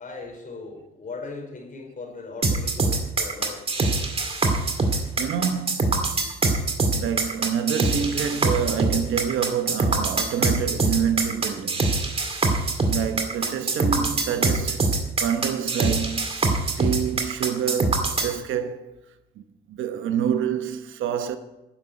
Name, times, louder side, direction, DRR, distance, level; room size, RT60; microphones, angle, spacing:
voice 1, 0.0-4.0, left 3 dB, 45° left, 4.6 m, -39 dB
sound 1, 2.4-18.3, right 3 dB, 30° right, 2.2 m, -23 dB
voice 2, 5.2-6.4 6.9-11.8 12.9-14.9 15.2-16.3 16.8-18.9 19.7-21.4, right 8 dB, 80° right, 1.1 m, -27 dB
10.5 x 7.3 x 9.3 m
cardioid pair, 90°, 20 cm